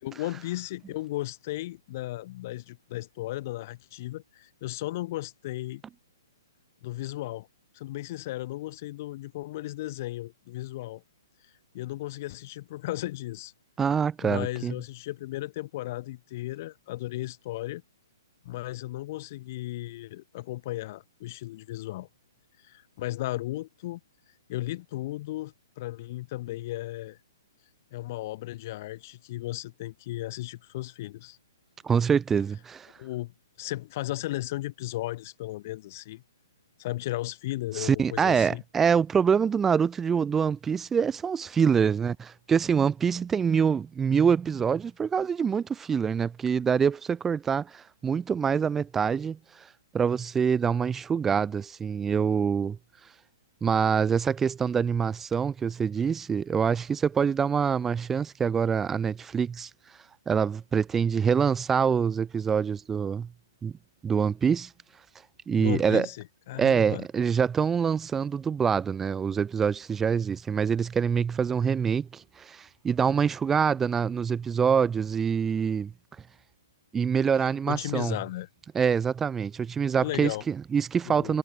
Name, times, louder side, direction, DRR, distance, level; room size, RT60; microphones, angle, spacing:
voice 1, 0.0-5.8 6.8-7.5 7.7-11.0 11.7-13.5 14.2-17.8 18.4-22.1 22.6-24.0 24.5-27.2 27.9-31.4 33.0-33.3 33.6-36.2 36.8-38.6 65.5-67.1 77.7-78.5 80.0-80.4 81.0-81.4, left 16 dB, 40° left, 2.9 m, -35 dB
voice 2, 13.8-14.7 31.8-32.9 37.8-49.4 49.9-52.8 53.6-59.7 60.3-63.3 63.6-63.7 64.0-64.7 65.5-66.1 66.6-75.9 76.9-78.2 78.7-81.4, right 6 dB, 10° right, 2.1 m, -25 dB
figure-of-eight pair, 120°, 2 cm